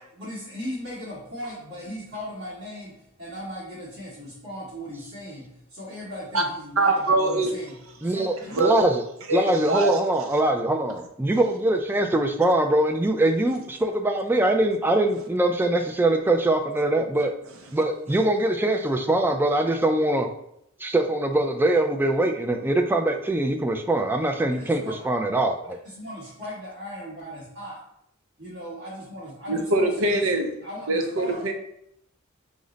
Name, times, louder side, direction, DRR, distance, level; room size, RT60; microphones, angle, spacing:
voice 1, 0.0-8.7 24.5-25.1 25.8-27.8 28.4-30.3 30.6-31.4, equal, 55° right, -9 dB, 1.5 m, -38 dB
voice 2, 6.8-7.5 8.5-8.8 9.3-10.0 29.5-30.5 30.9-31.5, right 2 dB, 80° right, 4 dB, 0.6 m, -23 dB
voice 3, 8.0-9.0 9.3-17.3 17.7-20.3 20.8-25.8, right 1 dB, 10° right, 4 dB, 0.3 m, -23 dB
5.0 x 2.1 x 3.9 m, 0.75 s
head